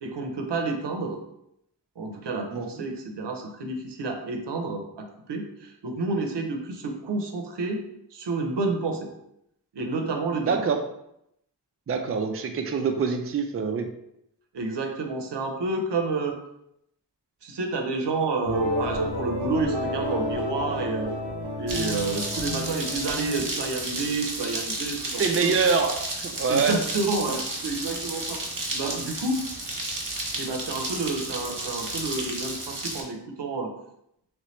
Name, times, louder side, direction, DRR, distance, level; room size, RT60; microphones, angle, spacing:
voice 1, 0.0-1.2 2.0-7.8 8.1-9.1 9.7-10.6 14.5-16.4 17.4-21.2 21.6-25.5 26.5-29.4 30.3-33.7, right 3 dB, 80° right, 4 dB, 0.6 m, -29 dB
voice 2, 2.5-2.9 10.4-10.8 11.9-13.9 25.2-26.0 26.2-26.7, right 5 dB, 35° right, 4 dB, 0.4 m, -25 dB
sound 1, 18.4-23.5, left 1 dB, 65° left, 1.2 m, -30 dB
sound 2, 21.7-33.0, right 2 dB, 50° right, 0.9 m, -32 dB
3.2 x 3.0 x 3.0 m, 0.78 s
wide cardioid pair, 60°, 42 cm